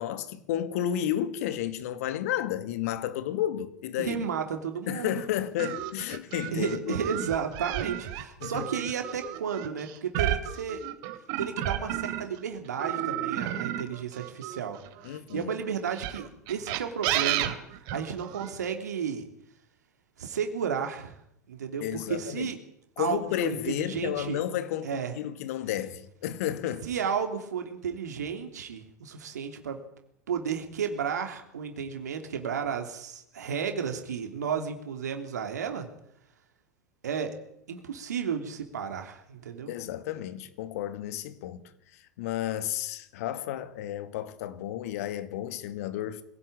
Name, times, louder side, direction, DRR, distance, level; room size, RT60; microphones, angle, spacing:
voice 1, 0.0-4.2 4.9-7.0 8.4-8.7 15.0-15.5 21.8-22.5 23.0-26.9 39.7-41.6 42.2-46.2, left 11 dB, 60° left, 2.4 m, -32 dB
voice 2, 4.0-5.2 6.5-10.8 11.4-14.8 15.0-17.5 17.9-19.3 20.2-21.2 21.5-22.6 23.0-24.4 24.8-25.2 26.8-29.8 30.3-35.9 37.0-37.3 37.7-39.7, right 7 dB, 70° right, 3.3 m, -33 dB
sound 1, 5.6-12.4 12.8-15.2 15.9-18.5, right 12 dB, 50° right, 3.1 m, -32 dB
25.5 x 17.5 x 8.9 m
figure-of-eight pair, 90°, 9 cm